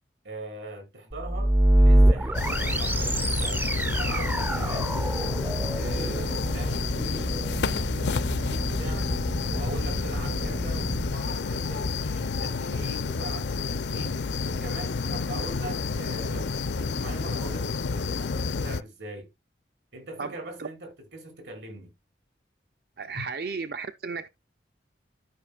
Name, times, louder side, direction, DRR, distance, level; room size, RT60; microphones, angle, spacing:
voice 1, 0.2-3.6 4.0-5.0 5.7-9.1 9.5-19.3 19.9-21.9 23.1-23.3, right 2 dB, 85° right, 4.9 m, -42 dB
sound 1, 1.1-11.1, right 1 dB, 10° right, 0.4 m, -26 dB
sound 2, 2.3-18.8, left 4 dB, 80° left, 0.6 m, -30 dB
voice 2, 23.0-24.3, right 5 dB, 60° right, 0.6 m, -34 dB
13.0 x 5.7 x 2.4 m
head